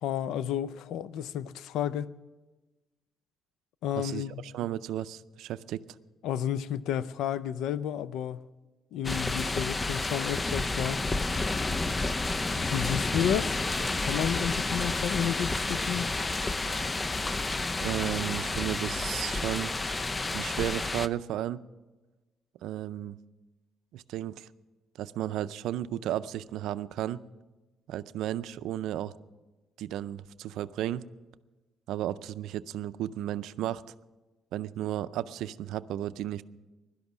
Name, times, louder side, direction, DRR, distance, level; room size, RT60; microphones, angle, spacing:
voice 1, 0.0-2.1 3.8-4.4 6.2-8.5 8.9-11.0 12.6-16.1, left 9 dB, 85° left, 0.5 m, -31 dB
voice 2, 4.0-5.8 17.8-19.7 20.3-21.6 22.6-23.2 23.9-24.5 25.0-27.2 27.9-29.1 29.8-31.0 31.9-33.8 34.5-36.4, right 12 dB, 85° right, 0.4 m, -33 dB
sound 1, 9.0-21.1, left 2 dB, 25° left, 0.5 m, -30 dB
17.0 x 12.0 x 6.1 m
cardioid pair, 90°, 0 cm